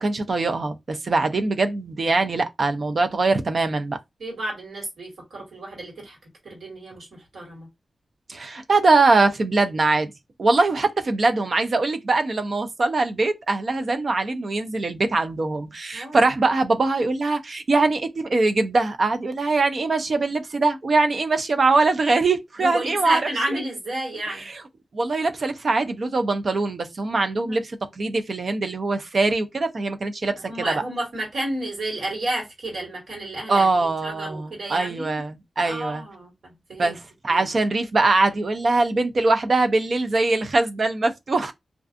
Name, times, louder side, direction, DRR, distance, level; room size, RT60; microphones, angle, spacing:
voice 1, 0.0-4.0 8.3-10.1 10.4-23.6 24.3-24.6 24.9-30.7 33.5-36.0 36.8-37.0 37.2-41.5, right 3 dB, 55° right, 0.4 m, -22 dB
voice 2, 4.2-6.2 6.4-7.7 15.9-16.3 22.6-24.4 27.4-27.6 30.5-35.2 35.6-37.0 37.3-37.5, right 1 dB, 80° right, 1.6 m, -31 dB
2.4 x 2.3 x 2.5 m
wide cardioid pair, 75°, 0 cm